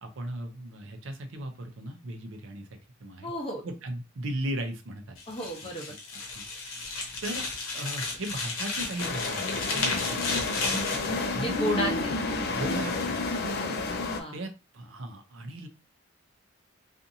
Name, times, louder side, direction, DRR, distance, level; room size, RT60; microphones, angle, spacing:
voice 1, 0.0-2.7 3.0-3.3 3.6-5.2 6.3-6.5 6.7-7.4 7.7-10.8 11.3-11.6 12.5-13.3 14.3-15.7, right 1 dB, 65° right, 6 dB, 0.6 m, -37 dB
voice 2, 3.2-3.6 5.3-5.9 11.2-12.2 12.9-13.0 14.1-14.4, equal, 25° left, 0 dB, 0.7 m, -32 dB
sound 1, 5.2-11.1, left 3 dB, 85° left, 0.8 m, -33 dB
sound 2, 9.0-14.2, left 3 dB, 50° left, 0.4 m, -30 dB
2.6 x 2.5 x 2.6 m, 0.28 s
head